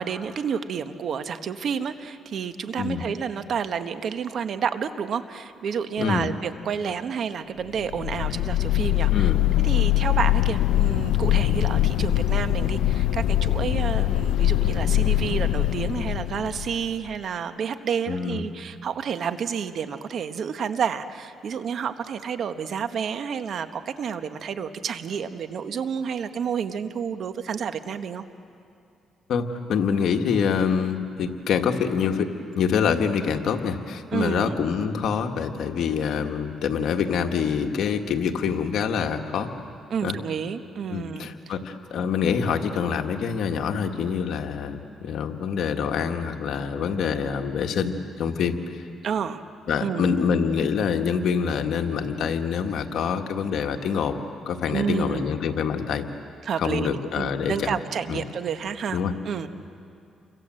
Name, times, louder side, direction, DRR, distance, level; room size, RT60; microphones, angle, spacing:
voice 1, 0.0-9.3 9.6-28.2 34.1-34.6 39.9-41.5 49.0-49.4 49.8-50.2 54.7-55.3 56.4-59.0 59.2-59.5, right 7 dB, 60° right, 9 dB, 1.3 m, -30 dB
voice 2, 2.8-3.1 6.0-6.3 9.1-9.4 18.1-18.4 29.3-32.3 32.6-39.5 40.0-40.2 40.9-47.9 48.2-48.9 49.7-54.2 54.5-56.1 56.6-57.7 58.1-58.2 58.9-59.1, left 6 dB, 70° left, 4 dB, 1.8 m, -25 dB
sound 1, 7.8-17.1, left 14 dB, 90° left, 0.6 m, -23 dB
29.5 x 25.0 x 7.8 m, 2.5 s
cardioid pair, 90°, 0 cm